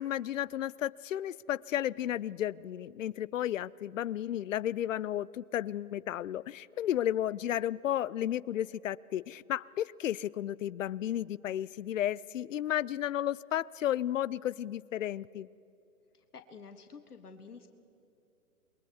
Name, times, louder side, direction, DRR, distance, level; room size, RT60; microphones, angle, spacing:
voice 1, 0.0-15.5, left 11 dB, 60° left, 22 dB, 0.6 m, -33 dB
voice 2, 16.1-17.7, left 5 dB, 85° left, 7 dB, 1.6 m, -50 dB
27.5 x 22.0 x 4.7 m, 2.8 s
hypercardioid pair, 130°, 44 cm